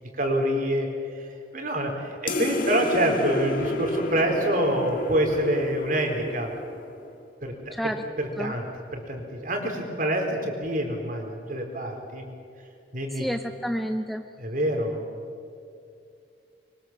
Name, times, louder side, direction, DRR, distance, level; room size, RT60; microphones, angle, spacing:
voice 1, 0.1-0.9 1.1-6.7 7.4-7.7 8.2-8.7 8.9-12.3 12.9-13.3 14.4-15.0, right 1 dB, 45° right, 2 dB, 4.4 m, -26 dB
sound 1, 2.3-7.1, left 2 dB, 45° left, 2.0 m, -31 dB
voice 2, 7.7-8.0 8.4-8.5 13.1-14.2, equal, ahead, 6 dB, 0.7 m, -29 dB
25.0 x 23.5 x 7.5 m, 2.5 s
head